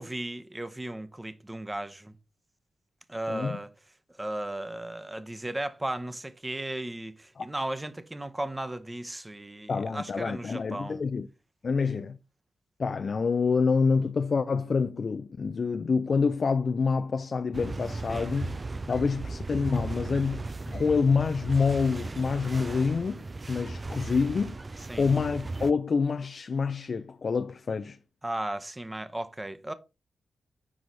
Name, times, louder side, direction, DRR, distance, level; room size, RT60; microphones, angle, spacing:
voice 1, 0.0-2.1 3.1-3.7 4.2-11.0 18.1-18.3 24.9-25.1 28.2-29.7, right 1 dB, 20° right, 0.8 m, -35 dB
voice 2, 3.3-3.6 7.4-7.5 9.7-11.3 11.6-12.2 12.8-18.6 18.9-24.6 25.0-28.0, left 5 dB, 60° left, 0.4 m, -27 dB
sound 1, 17.5-25.7, right 3 dB, 35° right, 0.4 m, -36 dB
6.2 x 4.8 x 4.0 m
cardioid pair, 60°, 0 cm